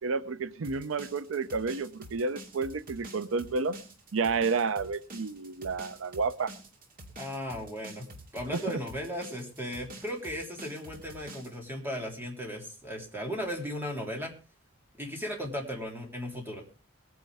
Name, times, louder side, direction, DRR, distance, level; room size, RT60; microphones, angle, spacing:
voice 1, 0.0-3.8 4.1-6.5 8.5-8.8, right 4 dB, 80° right, 14 dB, 0.6 m, -30 dB
sound 1, 0.6-11.6, right 1 dB, 45° right, 2.3 m, -47 dB
voice 2, 7.2-8.1 8.3-14.3 15.0-16.6, equal, 10° right, 1 dB, 3.4 m, -36 dB
21.5 x 9.4 x 3.5 m, 0.34 s
head